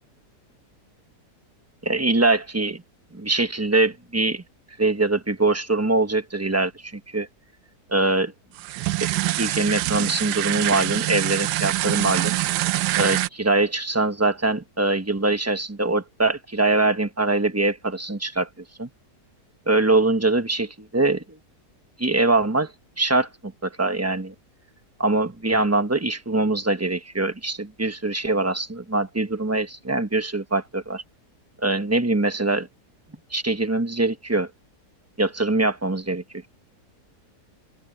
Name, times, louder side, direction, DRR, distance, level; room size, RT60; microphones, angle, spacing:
voice 1, 1.8-2.8 3.1-4.4 4.8-7.3 7.9-8.3 9.0-9.1 9.3-12.3 13.0-18.5 18.8-18.9 19.7-21.4 22.0-22.7 23.0-24.3 25.0-31.0 31.6-32.7 33.3-34.5 35.2-36.5, right 2 dB, 10° right, 1.0 m, -23 dB
sound 1, 8.6-13.3, right 16 dB, 90° right, 1.2 m, -25 dB
open air
omnidirectional pair, 1.7 m